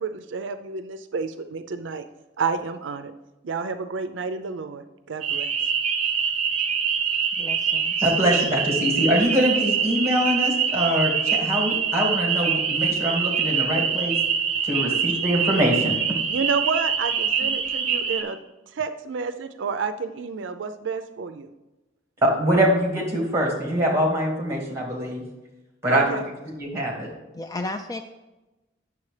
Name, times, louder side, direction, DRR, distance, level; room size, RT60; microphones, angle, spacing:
voice 1, 0.0-2.0 2.4-3.1 3.4-5.5 15.0-15.2 16.3-18.4 18.7-21.5 25.9-26.2, right 5 dB, 75° right, 9 dB, 0.5 m, -30 dB
sound 1, 5.2-18.2, right 7 dB, 40° right, 1.2 m, -24 dB
voice 2, 7.4-8.0 27.3-28.0, left 2 dB, 20° left, 6 dB, 0.3 m, -33 dB
voice 3, 8.0-14.2 14.6-16.0 22.2-25.2 25.8-26.2 26.5-27.1, equal, 15° right, -1 dB, 2.2 m, -23 dB
9.7 x 6.9 x 3.3 m, 1.1 s
head